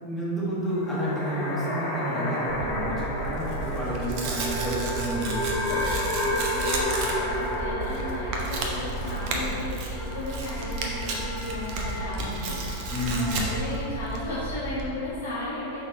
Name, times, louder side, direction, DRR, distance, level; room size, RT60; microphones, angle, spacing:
voice 1, 0.0-5.9 12.9-13.5, equal, 10° left, -8 dB, 1.4 m, -30 dB
sound 1, 0.6-14.0, left 1 dB, 30° left, 1.1 m, -32 dB
Tearing, 2.5-14.8, right 2 dB, 45° right, 0.8 m, -32 dB
voice 2, 6.2-15.8, left 1 dB, 80° left, -11 dB, 1.3 m, -35 dB
5.9 x 4.1 x 3.9 m, 2.9 s
figure-of-eight pair, 90°, 0 cm